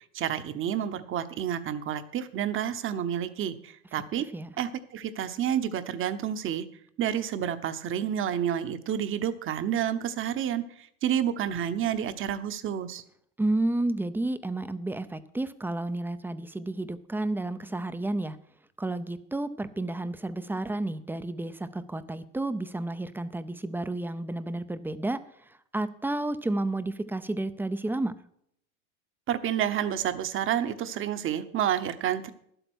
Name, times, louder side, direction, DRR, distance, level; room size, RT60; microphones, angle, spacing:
voice 1, 0.1-4.3 4.6-6.7 7.0-13.0 29.3-32.3, right 9 dB, 35° right, 11 dB, 1.1 m, -29 dB
voice 2, 13.4-18.4 18.8-28.1, right 2 dB, 5° right, 12 dB, 0.6 m, -31 dB
11.5 x 8.0 x 6.2 m, 0.70 s
supercardioid pair, 125°, 37 cm